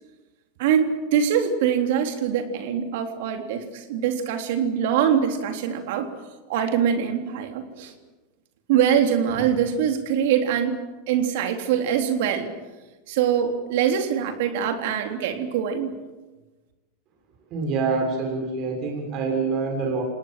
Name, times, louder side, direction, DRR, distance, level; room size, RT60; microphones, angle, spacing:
voice 1, 0.6-6.1 6.5-7.9 8.7-10.8 11.1-12.5 13.1-15.9, right 8 dB, 65° right, 5 dB, 3.6 m, -23 dB
voice 2, 17.5-20.0, right 4 dB, 50° right, 1 dB, 6.5 m, -26 dB
28.5 x 19.0 x 7.7 m, 1.2 s
hypercardioid pair, 95°, 0 cm